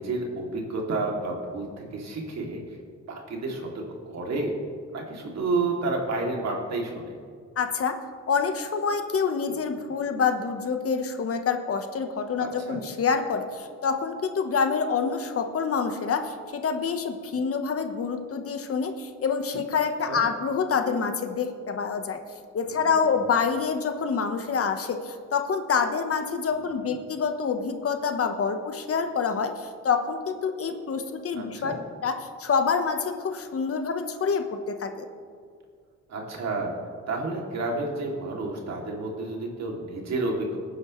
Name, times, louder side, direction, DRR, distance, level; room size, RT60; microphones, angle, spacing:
voice 1, 0.0-2.8 3.1-4.5 4.9-7.2 12.4-12.8 20.1-20.2 22.6-23.2 26.5-27.0 31.3-31.8 36.1-36.7 37.1-40.6, right 3 dB, 60° right, 0 dB, 2.8 m, -31 dB
voice 2, 7.6-8.0 8.3-22.2 22.5-31.7 32.0-32.1 32.4-35.0, left 5 dB, 50° left, 7 dB, 1.2 m, -27 dB
18.5 x 9.8 x 3.2 m, 2.1 s
cardioid pair, 90°, 30 cm